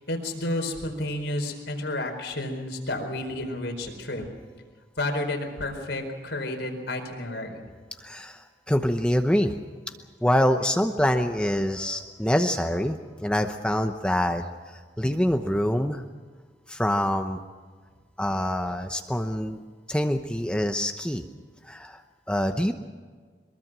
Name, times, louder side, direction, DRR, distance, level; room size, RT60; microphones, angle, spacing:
voice 1, 0.0-4.2 5.0-7.6, left 1 dB, 80° left, 4 dB, 4.5 m, -31 dB
voice 2, 8.0-9.5 10.2-16.0 16.7-17.4 18.2-19.6 19.9-21.2 21.6-22.0 22.3-22.7, equal, 5° left, 6 dB, 0.9 m, -25 dB
23.5 x 22.5 x 6.2 m, 1.5 s
head